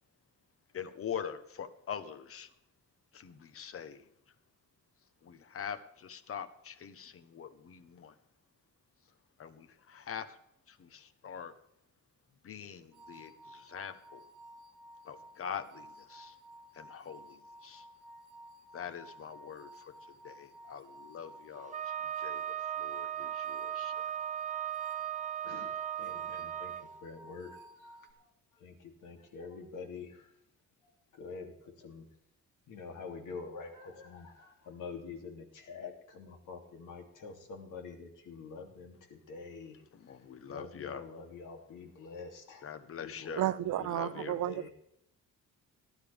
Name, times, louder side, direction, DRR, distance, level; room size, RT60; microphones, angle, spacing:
voice 1, 0.7-2.5 3.1-4.1 5.2-8.2 9.4-10.4 10.7-11.5 12.4-14.2 15.0-16.4 16.7-17.9 18.7-24.2 39.9-41.0 42.6-43.5 43.8-44.4, left 8 dB, 45° left, 1.2 m, -44 dB
sound 1, 12.9-28.1, right 1 dB, 90° right, 1.5 m, -54 dB
Wind instrument woodwind instrument, 21.7-26.8, right 11 dB, 25° right, 0.5 m, -37 dB
voice 2, 25.4-30.4 30.8-32.1 32.7-42.7 43.0-44.7, left 4 dB, 80° left, 3.1 m, -47 dB
voice 3, 43.4-44.7, right 13 dB, 70° right, 0.7 m, -32 dB
18.0 x 12.0 x 3.6 m
cardioid pair, 135°, 31 cm